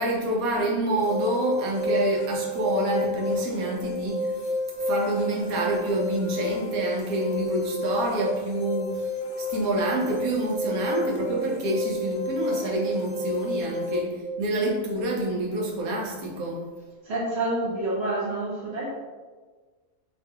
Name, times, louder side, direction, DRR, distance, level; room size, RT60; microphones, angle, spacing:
voice 1, 0.0-9.1 9.4-16.6, right 1 dB, 90° right, -2 dB, 1.3 m, -27 dB
sound 1, 1.0-14.0, left 1 dB, 65° left, 0.5 m, -30 dB
voice 2, 17.0-18.9, right 2 dB, 55° right, -8 dB, 0.9 m, -28 dB
3.5 x 3.2 x 2.8 m, 1.4 s
omnidirectional pair, 1.5 m